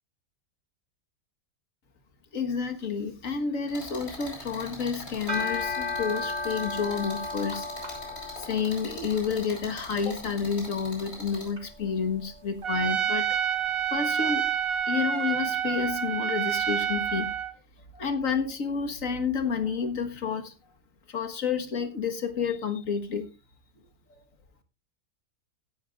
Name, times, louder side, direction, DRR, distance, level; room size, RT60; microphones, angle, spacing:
voice 1, 2.3-7.7 8.4-13.4 13.9-14.5 14.9-17.3 17.9-20.5 21.1-23.3, left 6 dB, 65° left, 6 dB, 2.0 m, -30 dB
sound 1, 3.7-11.5, left 1 dB, 45° left, 5.1 m, -42 dB
sound 2, 5.3-14.5, left 3 dB, 30° right, 2.2 m, -37 dB
Trumpet, 12.6-17.5, right 8 dB, 45° right, 1.1 m, -28 dB
16.5 x 11.0 x 2.5 m, 0.26 s
omnidirectional pair, 1.5 m